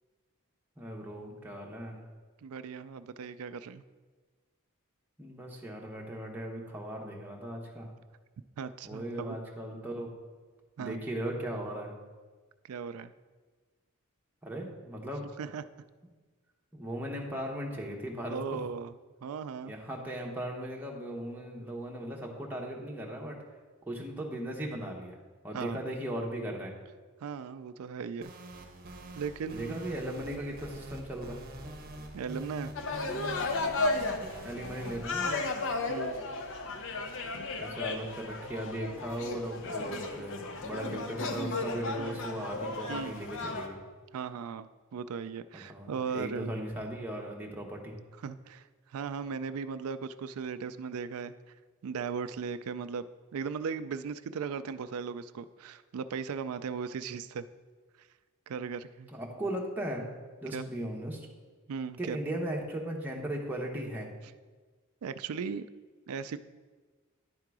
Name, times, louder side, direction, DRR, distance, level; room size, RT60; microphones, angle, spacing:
voice 1, 0.8-2.0 5.2-7.9 8.8-10.1 10.8-11.9 14.4-15.3 16.7-18.6 19.7-23.4 23.9-25.2 25.4-26.7 29.5-31.4 34.4-35.4 37.1-37.2 37.6-43.8 45.7-47.9 59.1-60.1 60.4-61.2 62.0-64.1, right 1 dB, 10° right, -2 dB, 1.0 m, -37 dB
voice 2, 2.4-3.8 8.6-9.4 10.8-11.0 12.6-13.1 15.4-15.6 18.3-18.9 19.2-19.7 25.5-25.8 27.2-28.3 29.1-29.8 32.1-32.7 35.9-36.2 42.0-42.2 42.9-43.2 44.1-46.5 48.2-51.5 51.8-53.0 53.3-57.5 58.0-58.1 58.5-59.1 60.5-60.7 61.7-62.2 65.0-65.7 66.1-66.4, right 6 dB, 70° right, 13 dB, 0.4 m, -37 dB
sound 1, 28.2-35.1, right 1 dB, 45° right, 0.9 m, -45 dB
sound 2, 32.8-43.7, left 3 dB, 60° left, 0.7 m, -34 dB
10.5 x 3.8 x 4.7 m, 1.4 s
head